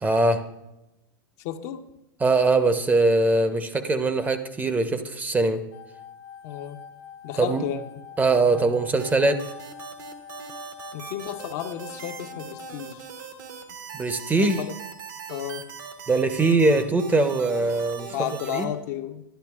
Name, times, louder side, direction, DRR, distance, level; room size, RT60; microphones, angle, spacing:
voice 1, 0.0-0.4 2.2-5.6 7.4-7.6 8.2-9.4 13.9-14.6 16.1-18.1 18.5-18.7, right 3 dB, 15° right, 9 dB, 0.6 m, -22 dB
voice 2, 1.4-1.8 6.4-6.8 7.2-7.8 8.5-8.7 10.9-13.1 14.4-14.8 15.3-15.7 18.1-19.2, left 10 dB, 55° left, 7 dB, 0.6 m, -33 dB
sound 1, 5.7-12.7, left 8 dB, 75° left, 1.2 m, -45 dB
sound 2, 9.0-18.6, right 6 dB, 70° right, 1.3 m, -40 dB
11.5 x 11.5 x 2.4 m, 0.91 s
hypercardioid pair, 95°, 11 cm